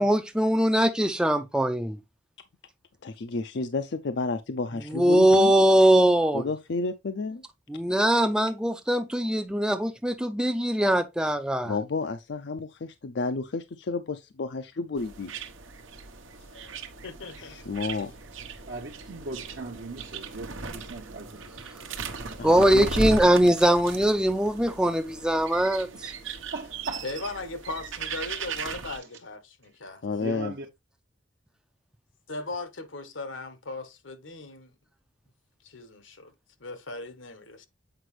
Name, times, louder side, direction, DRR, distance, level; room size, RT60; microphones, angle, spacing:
voice 1, 0.0-2.0 4.9-6.5 7.7-11.8 22.4-26.1, right 1 dB, 5° right, 0.4 m, -22 dB
voice 2, 3.0-5.5 6.3-7.4 11.6-15.3 17.4-18.1 22.4-22.9 30.0-30.5, left 3 dB, 60° left, 0.5 m, -31 dB
sound 1, 15.0-29.0, right 4 dB, 90° right, 1.0 m, -37 dB
voice 3, 17.0-17.6 27.0-30.0 32.3-34.7 35.6-36.3 36.6-37.7, left 2 dB, 80° left, 1.2 m, -38 dB
voice 4, 18.7-21.4 26.0-26.2 26.5-27.1 30.2-30.7, right 3 dB, 60° right, 0.8 m, -38 dB
7.8 x 5.0 x 3.2 m
head